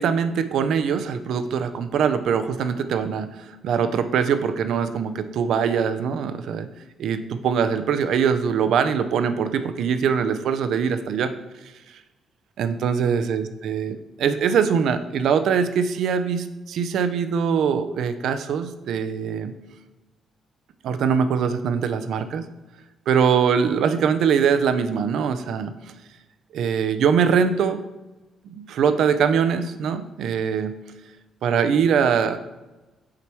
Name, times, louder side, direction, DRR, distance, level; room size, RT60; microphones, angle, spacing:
voice 1, 0.0-6.7 7.0-11.3 12.6-19.5 20.8-22.4 23.1-25.7 26.5-27.8 28.5-30.8 31.4-32.4, right 7 dB, 75° right, 10 dB, 0.5 m, -22 dB
8.4 x 3.0 x 4.6 m, 1.1 s
cardioid pair, 90°, 0 cm